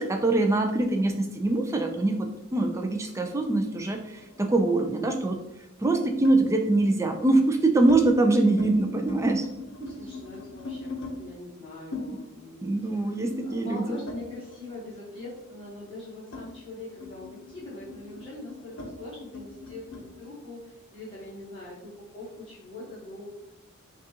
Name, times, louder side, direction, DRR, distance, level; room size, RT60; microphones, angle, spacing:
voice 1, 0.0-5.4 5.8-9.5 9.8-10.1 12.1-12.2 12.6-14.0, right 2 dB, 15° right, 3 dB, 0.3 m, -24 dB
sound 1, 3.6-5.0 6.2-6.5 7.2-8.0 8.4-8.7 9.0-11.2 11.9-14.8 15.1-20.1, left 3 dB, 60° left, 0.7 m, -41 dB
voice 2, 9.8-10.9 11.2-23.3, left 2 dB, 25° left, -8 dB, 1.1 m, -42 dB
6.1 x 2.4 x 2.8 m, 0.90 s
head